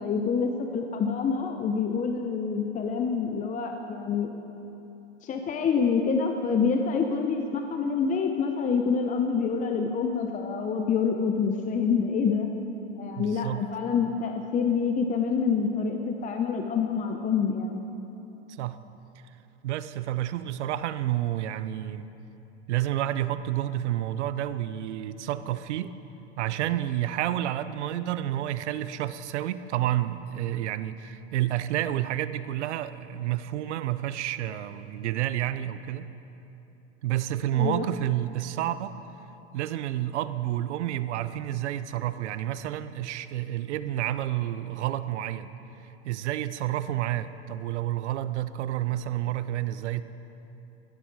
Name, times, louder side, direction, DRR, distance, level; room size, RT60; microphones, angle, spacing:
voice 1, 0.0-4.3 5.2-12.5 13.0-17.9 37.5-37.8, left 5 dB, 20° left, 4 dB, 0.8 m, -27 dB
voice 2, 13.2-13.6 18.6-18.8 19.6-22.1 22.7-25.9 26.4-36.1 37.0-38.9 39.5-45.5 46.0-50.0, right 13 dB, 75° right, 14 dB, 0.7 m, -30 dB
16.0 x 12.5 x 4.7 m, 3.0 s
hypercardioid pair, 115°, 35 cm